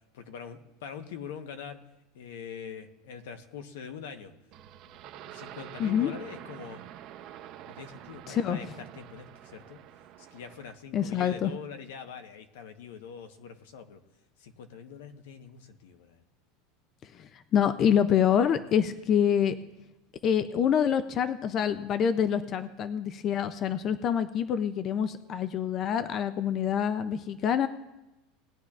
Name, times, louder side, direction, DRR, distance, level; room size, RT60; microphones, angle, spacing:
voice 1, 0.1-1.8 2.1-4.3 5.2-6.9 7.7-9.8 10.2-14.0 14.4-16.2, left 7 dB, 85° left, 8 dB, 1.0 m, -43 dB
sound 1, 4.5-10.8, right 11 dB, 35° right, 0.6 m, -47 dB
voice 2, 5.8-6.1 8.3-8.6 10.9-11.5 17.2-19.6 20.2-27.7, left 8 dB, 25° left, 12 dB, 0.4 m, -26 dB
19.5 x 10.0 x 2.4 m, 0.98 s
supercardioid pair, 180°, 0 cm